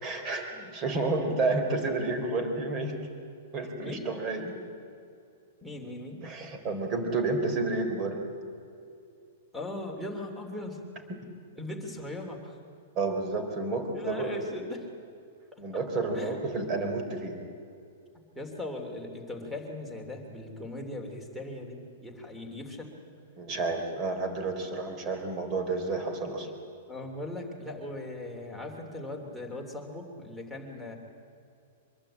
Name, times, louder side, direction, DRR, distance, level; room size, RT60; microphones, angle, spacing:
voice 1, 0.0-3.0 3.5-4.6 6.2-8.2 11.1-11.2 13.0-14.4 15.6-17.4 23.4-26.5, right 3 dB, 25° right, 6 dB, 3.9 m, -30 dB
voice 2, 5.6-6.2 9.5-10.8 11.6-12.6 13.9-14.9 15.5-15.6 16.1-16.4 18.3-22.9 26.9-31.0, left 1 dB, ahead, 3 dB, 3.1 m, -39 dB
24.5 x 22.5 x 8.9 m, 2.5 s
supercardioid pair, 170°, 0 cm